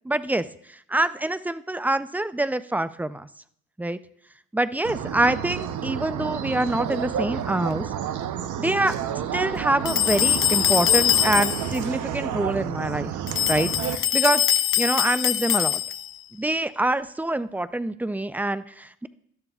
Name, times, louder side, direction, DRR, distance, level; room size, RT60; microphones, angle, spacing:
voice 1, 0.0-0.4 0.9-3.3 3.8-4.0 4.5-7.9 8.6-9.0 9.3-13.1 13.5-14.4 14.8-15.8 16.3-19.1, right 1 dB, 5° right, 13 dB, 0.5 m, -25 dB
sound 1, 4.8-14.0, right 9 dB, 75° right, 0.8 m, -30 dB
sound 2, 9.8-11.8 13.3-16.2, left 10 dB, 45° left, 0.6 m, -23 dB
17.0 x 12.5 x 2.4 m, 0.68 s
cardioid pair, 90°, 30 cm